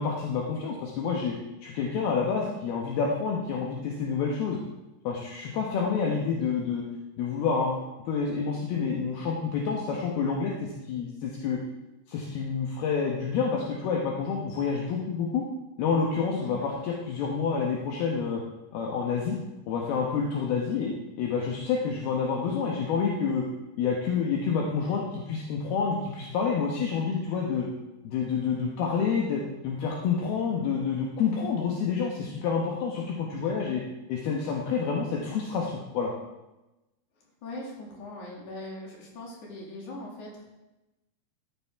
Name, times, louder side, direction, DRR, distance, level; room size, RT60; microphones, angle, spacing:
voice 1, 0.0-1.4 1.6-4.6 5.0-6.9 7.2-10.5 10.9-11.6 12.1-15.4 15.8-18.4 18.7-19.4 19.7-23.4 23.8-27.7 28.0-33.8 34.1-36.1, left 5 dB, 75° left, -1 dB, 3.0 m, -28 dB
voice 2, 16.3-16.7 37.2-40.4, left 1 dB, 50° left, -2 dB, 3.6 m, -41 dB
13.0 x 11.5 x 3.5 m, 1.0 s
omnidirectional pair, 4.7 m